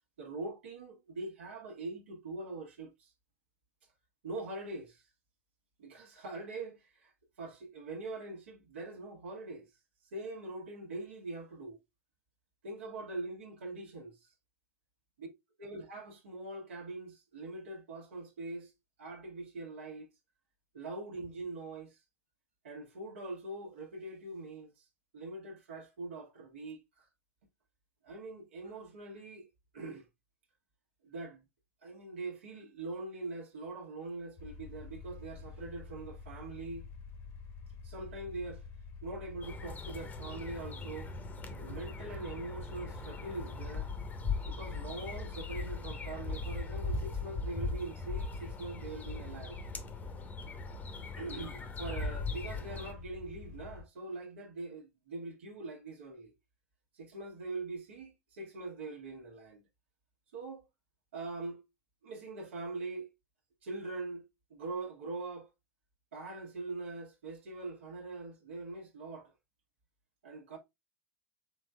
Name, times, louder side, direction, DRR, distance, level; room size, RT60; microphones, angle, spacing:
voice 1, 0.2-3.1 4.2-5.0 5.8-7.1 7.4-9.7 10.1-11.8 12.6-14.3 15.2-15.3 15.6-18.7 19.0-20.1 20.7-22.0 22.6-24.8 25.1-27.0 28.0-29.5 29.7-30.1 31.0-31.4 31.8-36.9 37.8-38.6 39.0-41.1 41.6-43.9 44.5-49.6 51.1-56.3 57.0-59.6 60.3-60.7 61.1-61.6 62.0-63.1 63.6-64.2 64.5-65.5 66.1-69.3 70.2-70.6, right 2 dB, 65° right, 1.2 m, -42 dB
sound 1, 34.4-53.8, left 5 dB, 45° left, 1.1 m, -48 dB
sound 2, 39.4-52.9, left 3 dB, 25° left, 0.9 m, -40 dB
5.2 x 3.5 x 2.2 m
figure-of-eight pair, 85°, 7 cm